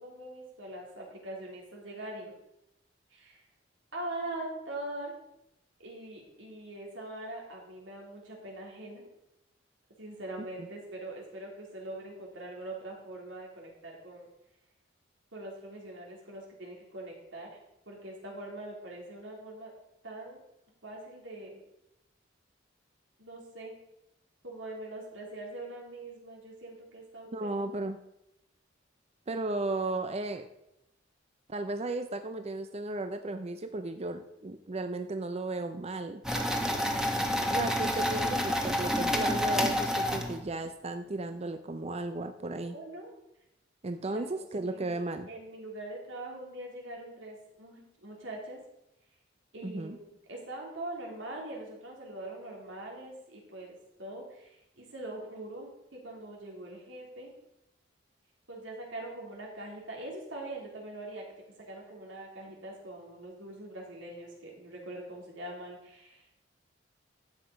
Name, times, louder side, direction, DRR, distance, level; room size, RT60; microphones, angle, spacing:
voice 1, 0.0-2.3 3.1-3.4 3.9-5.1 5.8-9.0 10.0-14.3 15.3-17.6 17.9-19.7 20.0-20.4 20.8-21.6 23.2-23.8 24.4-27.5 42.6-43.1 44.0-48.6 49.5-57.3 58.5-61.3 61.6-66.2, right 1 dB, 90° right, -1 dB, 3.7 m, -43 dB
voice 2, 27.3-28.0 29.3-30.5 31.5-36.2 37.5-42.8 43.8-45.3 49.6-50.0, right 2 dB, 35° right, 8 dB, 0.6 m, -35 dB
sound 1, 36.2-40.7, equal, 5° right, 1.4 m, -29 dB
12.5 x 8.1 x 5.3 m, 0.86 s
head